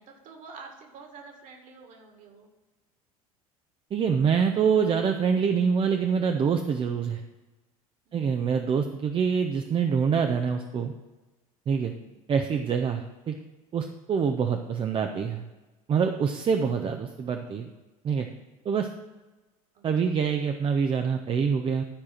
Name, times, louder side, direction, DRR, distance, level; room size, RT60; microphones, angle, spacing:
voice 1, 0.0-2.5 11.9-12.2 19.7-20.1, right 4 dB, 45° right, 3 dB, 2.0 m, -49 dB
voice 2, 3.9-7.2 8.1-10.9 11.7-11.9 12.3-13.4 13.7-15.4 15.9-17.7 18.0-18.3 18.6-18.9 19.8-21.8, right 6 dB, 30° right, 5 dB, 0.6 m, -25 dB
12.0 x 4.8 x 6.0 m, 1.2 s
figure-of-eight pair, 70°, 19 cm